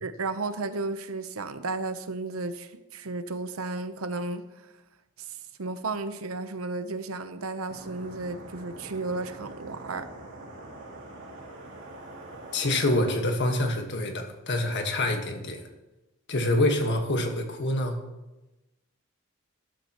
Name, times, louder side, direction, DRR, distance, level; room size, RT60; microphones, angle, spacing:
voice 1, 0.0-4.5 5.2-5.3 5.6-10.1, right 3 dB, 90° right, 10 dB, 0.8 m, -33 dB
sound 1, 7.7-13.2, right 2 dB, 60° right, 2.5 m, -44 dB
voice 2, 12.5-15.6 16.3-18.0, left 1 dB, 55° left, 4 dB, 1.5 m, -26 dB
13.0 x 12.5 x 3.0 m, 1.0 s
head